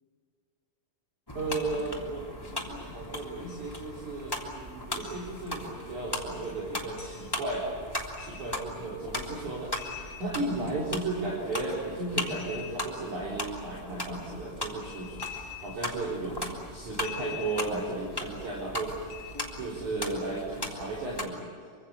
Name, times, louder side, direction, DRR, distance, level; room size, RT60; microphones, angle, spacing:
sound 1, 1.3-21.2, left 1 dB, 5° left, 2.0 m, -38 dB
voice 1, 1.4-7.8 8.2-9.7 10.2-19.1 19.5-21.4, right 2 dB, 40° right, -4 dB, 5.2 m, -34 dB
sound 2, 1.5-1.9 3.5-3.6 5.0-5.2 6.4-6.5 7.0-7.2 8.2-8.6 9.7-10.8 12.3-13.1 14.7-16.0 17.0-17.9 19.1-19.6, left 10 dB, 30° left, 7.8 m, -44 dB
27.0 x 25.0 x 7.1 m, 2.2 s
omnidirectional pair, 5.6 m